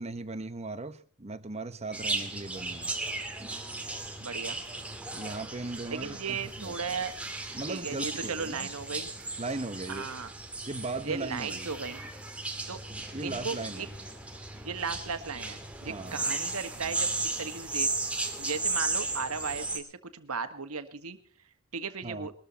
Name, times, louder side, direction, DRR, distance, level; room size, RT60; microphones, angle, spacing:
voice 1, 0.0-2.9 5.1-6.7 7.5-8.7 9.4-10.1 10.7-11.7 12.9-13.9 15.8-16.2 22.0-22.3, right 2 dB, 30° right, 10 dB, 1.0 m, -38 dB
sound 1, 1.9-19.8, right 2 dB, 5° right, 2.0 m, -35 dB
voice 2, 4.2-4.6 5.9-7.1 7.7-9.1 9.9-10.3 11.0-12.0 12.7-12.8 13.2-13.9 14.6-17.9 18.4-21.2 21.7-22.3, right 5 dB, 85° right, 9 dB, 1.5 m, -36 dB
21.0 x 13.0 x 4.2 m, 0.40 s
head